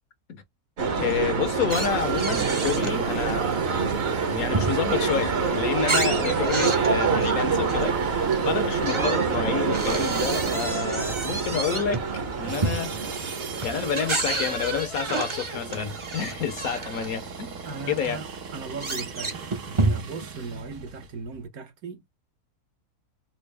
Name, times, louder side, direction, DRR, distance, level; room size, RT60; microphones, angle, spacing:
sound 1, 0.8-14.0, right 5 dB, 50° right, 1.0 m, -26 dB
voice 1, 0.9-3.6 4.3-12.9 13.6-17.6 17.9-18.2, left 7 dB, 70° left, 1.2 m, -29 dB
sound 2, 1.7-3.0 3.4-5.1 5.5-8.1 8.7-17.1 17.7-17.8 18.0-20.3, right 3 dB, 30° right, 0.5 m, -30 dB
sound 3, 1.7-21.5, right 5 dB, 85° right, 1.8 m, -39 dB
voice 2, 17.6-18.3 18.5-22.1, right 5 dB, 70° right, 1.4 m, -37 dB
4.3 x 2.0 x 3.3 m
omnidirectional pair, 1.6 m